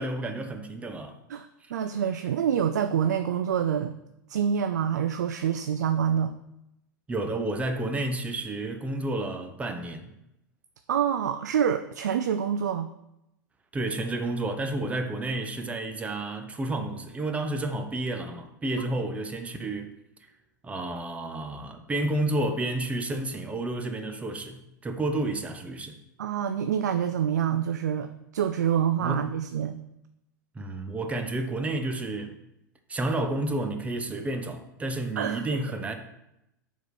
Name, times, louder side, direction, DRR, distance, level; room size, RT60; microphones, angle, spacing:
voice 1, 0.0-1.1 7.1-10.1 13.7-19.9 20.6-26.0 29.0-29.2 30.5-32.4 32.9-35.9, right 2 dB, 15° right, 0.9 m, -30 dB
voice 2, 1.3-4.0 4.3-6.3 10.9-12.9 26.2-29.8 35.2-35.5, right 8 dB, 60° right, 0.4 m, -26 dB
6.7 x 4.2 x 6.1 m
figure-of-eight pair, 90°, 10 cm